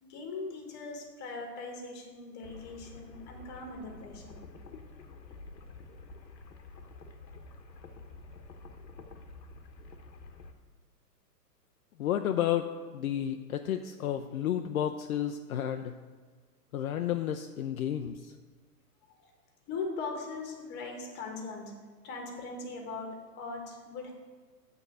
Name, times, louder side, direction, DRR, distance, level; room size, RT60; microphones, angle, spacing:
voice 1, 0.0-4.4 19.2-19.3 19.7-21.7 22.0-24.1, left 3 dB, 20° left, 2 dB, 1.3 m, -40 dB
sound 1, 2.4-10.5, left 3 dB, 85° left, 1.2 m, -49 dB
voice 2, 12.0-12.7 12.9-15.9 16.7-18.3, left 10 dB, 60° left, 6 dB, 0.5 m, -31 dB
8.2 x 3.8 x 6.6 m, 1.5 s
hypercardioid pair, 140°, 49 cm